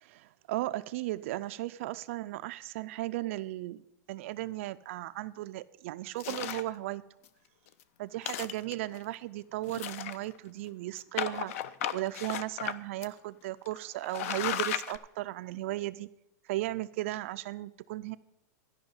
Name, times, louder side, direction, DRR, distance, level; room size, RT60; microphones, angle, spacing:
voice 1, 0.0-3.8 4.1-7.0 8.0-11.5 11.9-16.1 16.5-18.2, right 16 dB, 45° right, 0.3 m, -36 dB
sound 1, 6.2-6.7 7.3-7.4 7.7-7.8 8.1-9.0 9.7-10.5 11.2-12.7 13.0-13.1 13.6-13.8 14.0-15.0, left 10 dB, 50° left, 0.5 m, -35 dB
12.0 x 5.6 x 7.8 m
supercardioid pair, 165°, 9 cm